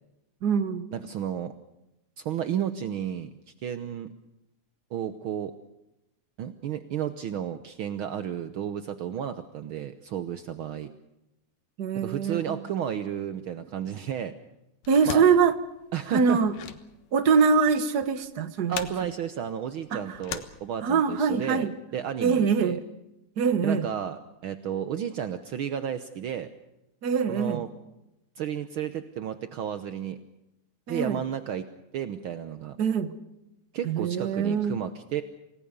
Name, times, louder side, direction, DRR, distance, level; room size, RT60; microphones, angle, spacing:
voice 1, 0.4-0.9 11.8-12.6 14.9-15.5 16.1-16.5 17.1-18.7 19.9-20.0 20.8-21.7 22.2-22.8 23.4-23.9 27.0-27.6 30.9-31.2 32.8-33.1 33.8-34.8, right 5 dB, 50° right, 11 dB, 1.3 m, -23 dB
voice 2, 0.9-1.5 2.2-3.3 3.6-4.1 4.9-5.5 6.4-10.9 11.9-14.3 15.0-15.2 15.9-16.4 18.7-22.8 23.6-26.5 27.3-27.7 28.4-30.2 30.9-31.7 31.9-32.8 33.7-35.2, right 9 dB, 75° right, 10 dB, 1.2 m, -32 dB
sound 1, 14.8-21.2, left 9 dB, 85° left, 2.9 m, -41 dB
27.5 x 18.5 x 6.9 m, 0.91 s
omnidirectional pair, 3.6 m